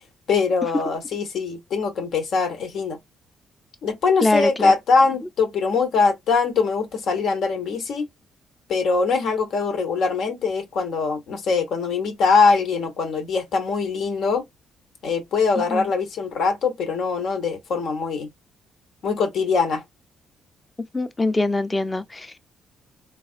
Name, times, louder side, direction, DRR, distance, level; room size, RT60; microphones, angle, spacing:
voice 1, 0.3-3.0 3.8-8.1 8.7-14.4 15.0-18.3 19.0-19.8, left 4 dB, 70° left, 1.1 m, -22 dB
voice 2, 4.2-4.7 15.7-15.9 20.9-22.4, left 2 dB, 20° left, 0.6 m, -23 dB
4.0 x 2.4 x 2.5 m
cardioid pair, 90°, 0 cm